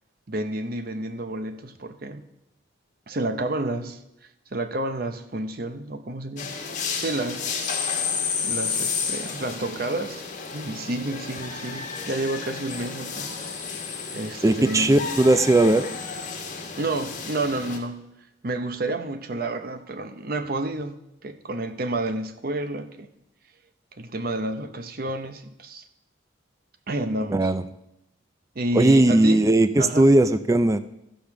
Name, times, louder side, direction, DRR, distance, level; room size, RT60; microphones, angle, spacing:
voice 1, 0.3-2.2 3.1-4.0 4.5-6.5 7.0-8.1 8.4-10.2 10.5-13.3 14.1-15.1 16.8-18.0 18.4-23.1 24.0-25.8 26.9-27.5 28.5-29.5 29.8-30.1, right 2 dB, 50° right, 9 dB, 0.7 m, -30 dB
sound 1, 6.4-17.8, left 5 dB, 40° left, 1.5 m, -31 dB
voice 2, 14.4-15.9 27.3-27.6 28.7-30.8, right 1 dB, 15° right, 12 dB, 0.3 m, -18 dB
14.0 x 5.2 x 5.9 m, 0.87 s
head